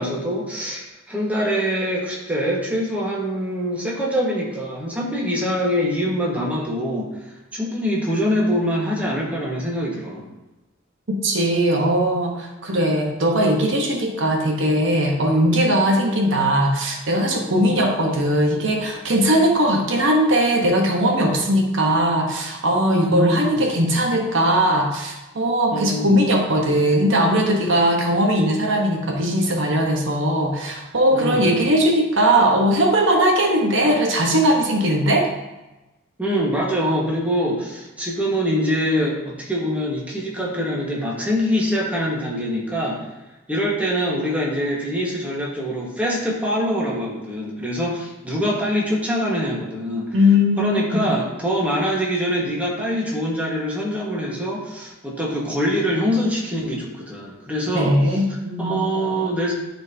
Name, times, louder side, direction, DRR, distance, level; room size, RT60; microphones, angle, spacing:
voice 1, 0.0-7.1 7.5-10.2 17.7-17.8 23.1-23.6 25.7-26.2 31.1-31.5 36.2-43.1 43.5-50.2 50.6-58.2 58.6-59.5, equal, 5° right, -4 dB, 1.5 m, -24 dB
voice 2, 11.1-35.3 50.1-51.1 57.7-59.1, equal, 65° right, 1 dB, 1.1 m, -19 dB
12.0 x 4.5 x 2.8 m, 1.0 s
head